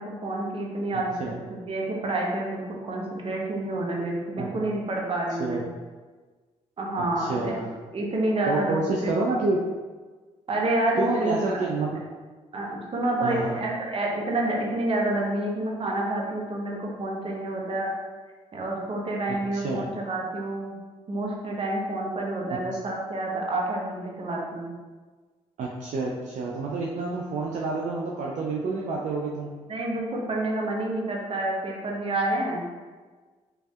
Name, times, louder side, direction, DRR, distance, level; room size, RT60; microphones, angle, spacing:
voice 1, 0.0-5.6 6.8-7.6 7.9-8.8 10.5-11.6 12.5-17.9 18.5-20.7 21.1-24.7 29.7-32.7, right 1 dB, 40° right, -1 dB, 0.8 m, -28 dB
voice 2, 0.9-1.4 4.4-4.5 5.4-5.6 7.2-7.8 8.5-9.6 11.0-12.0 13.2-13.6 19.5-19.9 22.5-22.6 25.6-29.5, right 3 dB, 60° right, -2 dB, 0.4 m, -28 dB
3.2 x 2.6 x 2.3 m, 1.4 s
supercardioid pair, 60°, 14 cm